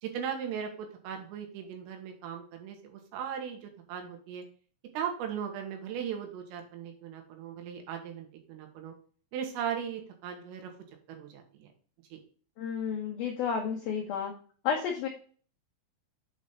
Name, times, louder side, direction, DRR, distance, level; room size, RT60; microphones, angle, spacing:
voice 1, 0.0-4.4 4.9-8.9 9.3-10.7 11.1-11.7 12.1-12.2, right 8 dB, 90° right, 3 dB, 4.2 m, -38 dB
voice 2, 12.6-14.4 14.6-15.1, left 6 dB, 85° left, 0 dB, 2.1 m, -31 dB
8.5 x 4.3 x 5.1 m, 0.43 s
omnidirectional pair, 5.7 m